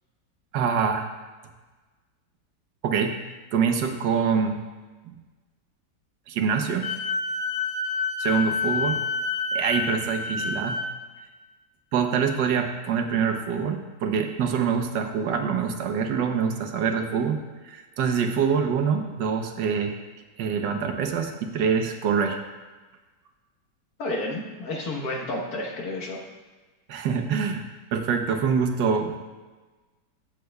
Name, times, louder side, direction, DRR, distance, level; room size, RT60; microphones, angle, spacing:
voice 1, 0.5-1.1 2.8-3.2 3.5-4.6 5.1-5.2 6.3-6.9 8.2-9.0 9.5-10.8 11.9-17.4 17.6-20.0 20.4-22.4 26.9-27.6 27.9-29.2, right 6 dB, 80° right, 5 dB, 1.5 m, -25 dB
Wind instrument woodwind instrument, 6.8-10.9, left 4 dB, 80° left, 1.6 m, -28 dB
voice 2, 24.0-26.2, left 1 dB, 60° left, 0 dB, 1.7 m, -31 dB
15.5 x 7.6 x 2.3 m, 1.3 s
omnidirectional pair, 1.9 m